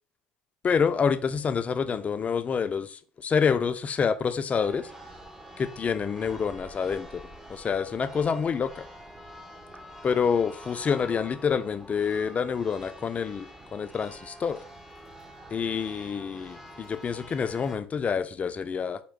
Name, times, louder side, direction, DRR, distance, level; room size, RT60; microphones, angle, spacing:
voice 1, 0.6-4.9 5.6-7.2 7.5-8.9 10.0-14.6 15.5-19.0, left 6 dB, 30° left, 0.4 m, -27 dB
Church bell, 4.6-17.8, equal, 10° right, 0.7 m, -46 dB
4.5 x 2.2 x 3.4 m
hypercardioid pair, 75°, 4 cm